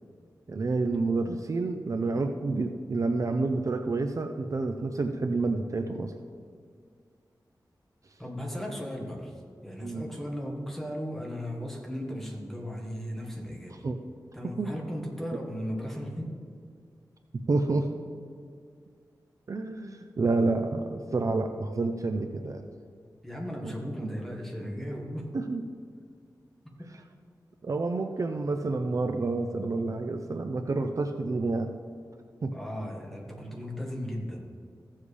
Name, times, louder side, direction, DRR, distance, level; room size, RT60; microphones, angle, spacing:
voice 1, 0.5-6.1 9.8-10.1 13.8-14.0 14.6-14.7 17.5-17.9 19.5-22.6 23.6-23.7 25.3-25.6 27.6-31.7 32.4-32.5, right 3 dB, 45° right, 5 dB, 0.5 m, -29 dB
voice 2, 8.2-9.3 9.6-13.9 14.3-16.3 23.2-25.4 26.8-26.9 32.5-34.4, equal, 5° left, 0 dB, 1.5 m, -36 dB
15.0 x 7.3 x 3.3 m, 2.1 s
wide cardioid pair, 120°, 7 cm